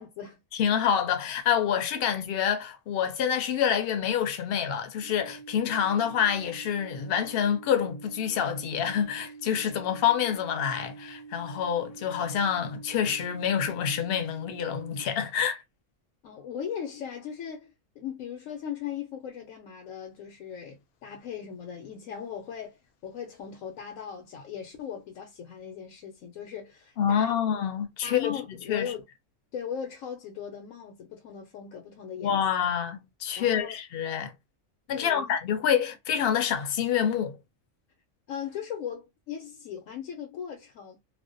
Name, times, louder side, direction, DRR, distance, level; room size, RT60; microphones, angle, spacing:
voice 1, 0.0-0.4 16.2-17.7 18.0-27.3 28.0-29.0 29.5-32.4 33.4-33.8 34.9-35.4 38.3-41.0, left 8 dB, 90° left, 1.0 m, -38 dB
voice 2, 0.5-15.6 27.0-28.9 32.2-34.3 34.9-37.4, left 8 dB, 60° left, 0.6 m, -27 dB
sound 1, 5.0-15.0, right 5 dB, 65° right, 0.8 m, -47 dB
2.4 x 2.1 x 2.5 m
omnidirectional pair, 1.3 m